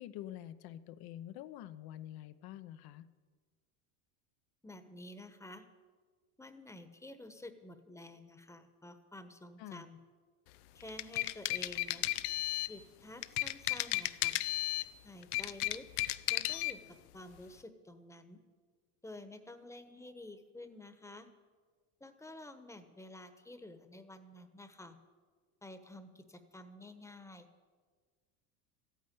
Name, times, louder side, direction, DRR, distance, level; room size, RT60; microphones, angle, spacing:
voice 1, 0.0-3.1 9.6-9.8, left 12 dB, 55° left, 12 dB, 0.9 m, -47 dB
voice 2, 4.6-5.6 6.4-10.0 10.7-12.1 12.7-14.4 15.0-15.8 16.3-18.4 19.0-21.3 22.0-25.0 25.6-27.5, left 1 dB, 5° left, 9 dB, 1.2 m, -50 dB
sound 1, 10.8-12.8 13.2-14.9 15.2-16.8, left 18 dB, 80° left, 0.7 m, -34 dB
13.5 x 9.3 x 9.5 m, 1.5 s
supercardioid pair, 115°, 45 cm